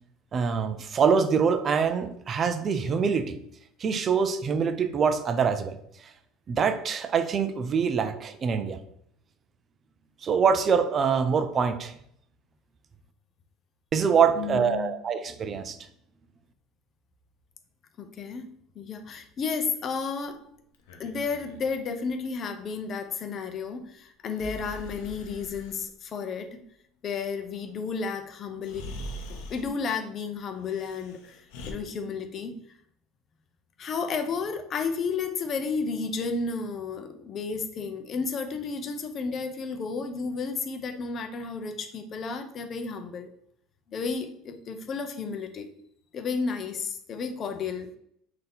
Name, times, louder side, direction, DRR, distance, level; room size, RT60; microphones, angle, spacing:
voice 1, 0.3-3.4 3.8-5.8 6.5-8.8 10.2-11.9 13.9-15.8, right 6 dB, 35° right, 10 dB, 0.4 m, -24 dB
voice 2, 14.4-14.9 18.0-18.5 18.8-20.4 21.0-26.6 27.0-28.9 29.3-32.5 33.8-43.3 43.9-45.7 46.1-47.9, left 5 dB, 40° left, 7 dB, 0.6 m, -32 dB
Breathing, 20.7-21.7 24.3-25.8 28.0-28.1 28.6-29.7 30.6-31.7, equal, 85° left, 0.7 m, -42 dB
3.9 x 2.7 x 3.6 m, 0.68 s
supercardioid pair, 120°, 0 cm